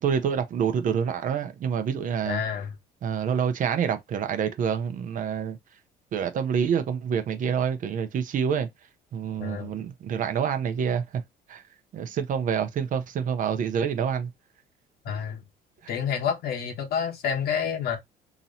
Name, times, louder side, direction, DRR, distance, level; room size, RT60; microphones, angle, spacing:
voice 1, 0.0-2.4 3.0-5.6 6.1-8.7 9.1-11.2 11.5-11.6 11.9-14.3, right 7 dB, 50° right, 0.7 m, -27 dB
voice 2, 2.2-2.7 9.4-9.7 15.0-15.4 15.9-18.0, left 7 dB, 65° left, 1.2 m, -28 dB
3.0 x 2.8 x 4.0 m
cardioid pair, 110°, 17 cm